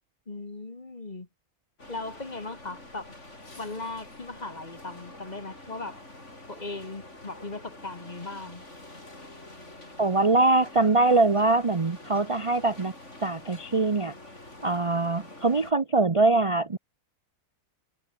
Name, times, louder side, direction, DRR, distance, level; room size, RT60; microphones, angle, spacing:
voice 1, 0.3-1.3 1.9-3.1 3.6-6.0 6.5-8.6, left 2 dB, 30° left, 1.8 m, -38 dB
sound 1, 1.8-15.7, left 2 dB, 50° left, 6.7 m, -47 dB
voice 2, 10.0-12.9 13.2-14.1 14.6-16.8, right 3 dB, 25° right, 0.8 m, -23 dB
omnidirectional pair, 1.6 m